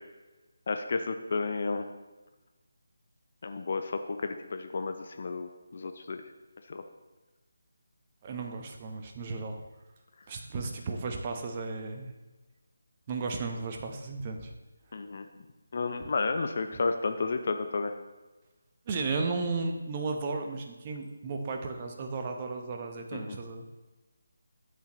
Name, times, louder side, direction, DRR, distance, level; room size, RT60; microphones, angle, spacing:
voice 1, 0.7-1.9 3.4-6.2 6.7-6.8 14.9-15.3 15.7-17.9 23.1-23.4, left 4 dB, 45° left, 7 dB, 0.7 m, -32 dB
voice 2, 8.2-9.6 10.3-12.1 13.1-14.5 18.9-23.7, right 4 dB, 30° right, 3 dB, 1.1 m, -34 dB
12.5 x 8.4 x 3.1 m, 1.2 s
figure-of-eight pair, 155°, 0 cm